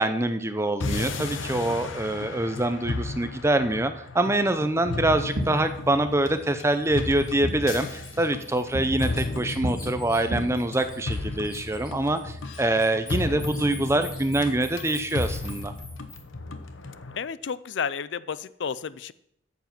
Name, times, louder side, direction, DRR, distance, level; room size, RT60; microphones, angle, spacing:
voice 1, 0.0-15.7, right 1 dB, 15° right, 9 dB, 0.6 m, -25 dB
sound 1, 0.8-17.2, left 2 dB, 80° left, 0.9 m, -34 dB
Fireworks, 5.2-14.5, equal, 90° right, 2.3 m, -38 dB
Bird, 7.2-7.3 7.7-11.2 11.4-16.2, left 2 dB, 20° left, 3.4 m, -44 dB
voice 2, 17.2-19.1, left 6 dB, 65° left, 17 dB, 0.4 m, -31 dB
9.1 x 7.2 x 6.0 m, 0.73 s
head